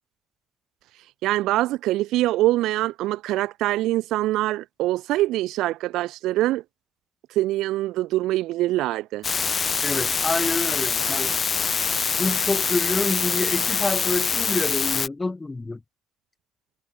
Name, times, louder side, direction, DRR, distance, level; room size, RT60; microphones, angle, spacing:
voice 1, 1.2-6.6 7.4-9.2, right 16 dB, 75° right, 0.3 m, -24 dB
sound 1, 9.2-15.1, left 6 dB, 40° left, 0.3 m, -24 dB
voice 2, 9.8-11.4 12.2-15.8, left 3 dB, 20° left, 1.8 m, -27 dB
supercardioid pair, 70°, 0 cm